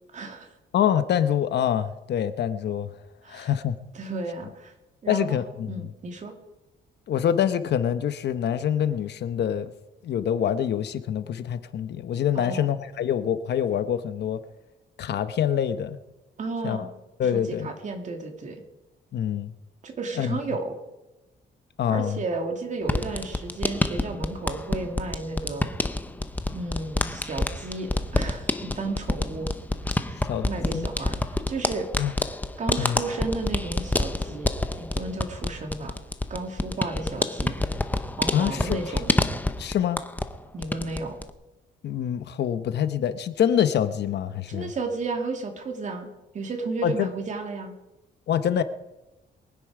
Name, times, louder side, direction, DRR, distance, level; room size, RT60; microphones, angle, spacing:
voice 1, 0.1-0.5 3.2-3.5 3.9-4.7 5.0-5.4 5.7-6.3 12.3-12.7 16.4-16.9 17.3-18.6 19.8-20.7 21.9-25.7 26.5-29.5 30.0-31.9 32.6-34.5 34.8-35.9 36.3-37.6 38.2-39.1 40.5-41.2 44.5-46.1 46.3-47.7, right 3 dB, 40° right, 3 dB, 2.3 m, -33 dB
voice 2, 0.7-2.9 3.3-3.7 5.1-5.9 7.1-9.7 10.0-14.4 15.0-16.0 16.6-16.9 17.2-17.7 19.1-19.5 20.2-20.3 21.8-22.2 30.3-30.9 32.0-32.1 32.8-33.0 38.3-39.0 39.6-40.0 41.8-44.7 46.8-47.1 48.3-48.6, left 9 dB, 60° left, 11 dB, 0.9 m, -25 dB
sound 1, 22.8-40.4 40.6-41.3, left 2 dB, 10° left, 0.7 m, -28 dB
22.5 x 9.9 x 4.8 m, 1.0 s
cardioid pair, 145°, 19 cm